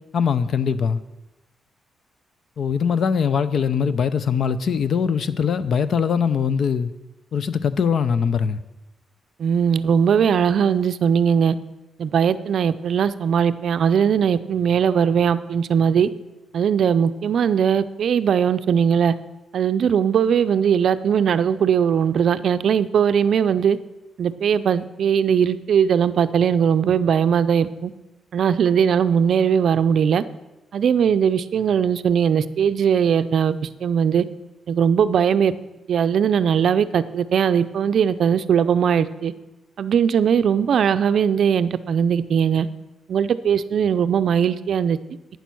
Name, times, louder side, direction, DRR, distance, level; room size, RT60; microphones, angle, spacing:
voice 1, 0.1-1.0 2.6-6.9 7.3-8.6, left 6 dB, 50° left, 0.6 m, -21 dB
voice 2, 9.4-11.6 12.0-16.1 16.5-19.1 19.5-23.8 24.2-27.9 28.3-30.2 30.7-34.2 34.7-35.5 35.9-39.3 39.8-42.7 43.1-45.0, right 7 dB, 55° right, 0.5 m, -19 dB
11.5 x 9.4 x 6.1 m
wide cardioid pair, 170°, 0 cm